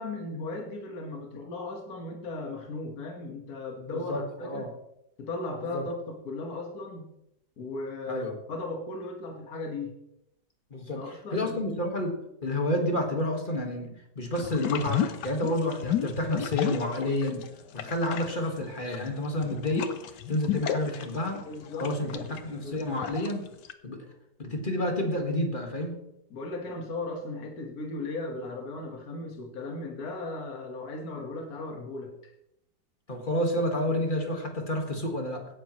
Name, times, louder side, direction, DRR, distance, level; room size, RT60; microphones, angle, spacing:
voice 1, 0.0-4.7 5.2-7.1 7.6-10.0 10.9-11.8 21.5-23.1 26.3-32.1, left 2 dB, 55° left, 2 dB, 2.1 m, -37 dB
voice 2, 3.9-4.7 5.7-5.8 8.1-8.3 10.7-12.1 12.4-17.4 17.7-19.9 20.3-21.4 21.8-23.4 23.8-24.0 24.4-26.0 33.1-35.4, left 1 dB, 30° left, 2 dB, 1.8 m, -29 dB
sound 1, 14.4-17.5 17.7-23.7, left 10 dB, 75° left, 1.5 m, -33 dB
17.0 x 10.0 x 3.2 m, 0.82 s
omnidirectional pair, 1.9 m